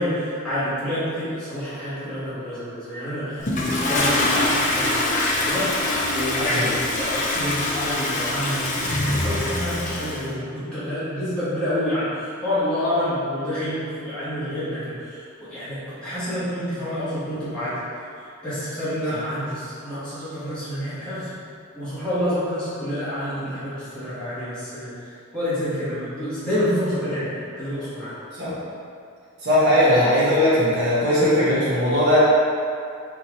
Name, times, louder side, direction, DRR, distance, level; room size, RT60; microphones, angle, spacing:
voice 1, 0.0-17.8 18.2-21.3 21.7-24.9 25.3-28.2, equal, 5° left, -16 dB, 1.3 m, -28 dB
Toilet flush, 3.4-10.2, left 1 dB, 35° left, 0.5 m, -24 dB
voice 2, 29.4-32.2, left 1 dB, 55° right, -11 dB, 1.2 m, -19 dB
4.2 x 3.8 x 3.0 m, 2.3 s
head